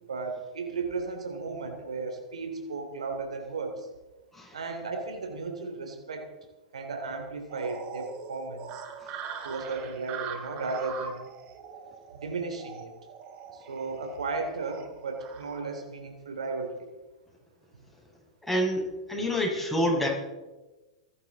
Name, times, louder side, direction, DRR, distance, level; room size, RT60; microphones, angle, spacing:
voice 1, 0.1-3.9 4.5-6.3 6.7-8.8 9.4-11.3 12.1-12.9 13.5-16.9 17.7-17.8, right 4 dB, 80° right, 5 dB, 3.0 m, -35 dB
sound 1, 7.5-15.6, right 7 dB, 40° right, 2.7 m, -42 dB
voice 2, 18.5-18.8 19.1-20.1, equal, 5° left, -3 dB, 6.3 m, -27 dB
27.5 x 11.5 x 4.1 m, 1.1 s
hypercardioid pair, 100°, 3 cm